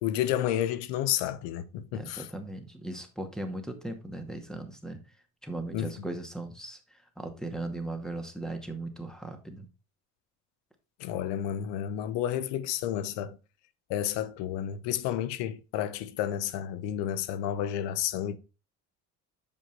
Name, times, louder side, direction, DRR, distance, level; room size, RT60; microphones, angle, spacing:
voice 1, 0.0-2.3 5.7-5.9 11.0-13.4 13.9-18.4, left 11 dB, 70° left, 1.0 m, -31 dB
voice 2, 1.9-5.2 5.4-9.7, right 2 dB, ahead, 2.1 m, -38 dB
7.4 x 5.2 x 4.5 m
hypercardioid pair, 65°, 43 cm